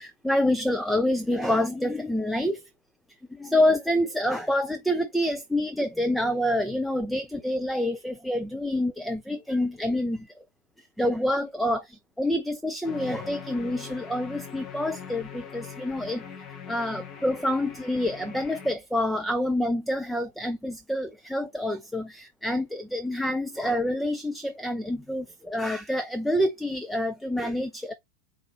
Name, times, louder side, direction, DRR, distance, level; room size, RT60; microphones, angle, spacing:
voice 1, 0.0-2.6 3.3-10.3 11.0-16.2 16.7-27.9, left 1 dB, ahead, 0.5 m, -27 dB
sound 1, 12.8-18.7, left 7 dB, 30° left, 1.2 m, -42 dB
4.1 x 3.8 x 3.3 m
figure-of-eight pair, 90°, 0 cm